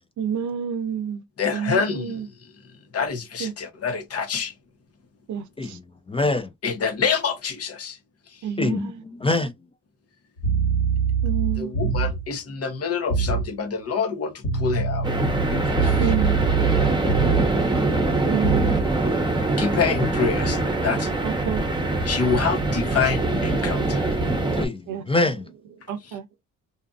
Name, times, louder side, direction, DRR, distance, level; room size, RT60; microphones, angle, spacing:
voice 1, 0.2-1.2 1.5-2.2 3.4-3.5 5.3-5.8 8.4-8.9 11.2-11.7 16.0-16.4 18.3-18.9 21.2-21.6 24.9-25.0 25.9-26.2, right 7 dB, 75° right, 0.6 m, -28 dB
voice 2, 1.4-2.5 2.9-4.5 6.6-8.0 8.3-8.5 11.6-15.1 15.7-16.1 19.6-21.1 22.0-24.1 26.0-26.2, left 5 dB, 55° left, 0.9 m, -27 dB
voice 3, 6.1-6.5 8.6-9.5 15.6-15.8 24.6-25.5, left 2 dB, 20° left, 0.3 m, -25 dB
sound 1, 10.4-12.3 13.1-13.5 14.4-17.6 18.4-18.8, right 5 dB, 80° left, 1.6 m, -24 dB
sound 2, 15.0-24.7, right 2 dB, 15° right, 0.9 m, -23 dB
2.7 x 2.5 x 2.4 m
cardioid pair, 105°, 29 cm